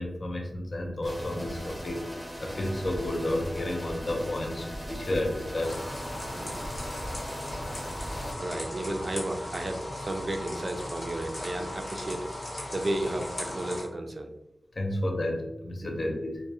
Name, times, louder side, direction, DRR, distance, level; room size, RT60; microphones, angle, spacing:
voice 1, 0.0-2.0 2.4-5.8 14.7-16.4, left 1 dB, 55° left, 1 dB, 0.4 m, -31 dB
sound 1, 1.0-8.3, equal, 10° left, 0.8 m, -39 dB
sound 2, 5.6-13.8, left 1 dB, 85° left, 1.0 m, -38 dB
voice 2, 6.3-6.6 7.6-7.8 8.4-12.2 12.7-14.3 15.8-15.9, right 1 dB, 45° right, 4 dB, 0.3 m, -33 dB
2.2 x 2.0 x 2.7 m, 0.88 s
wide cardioid pair, 75°, 0 cm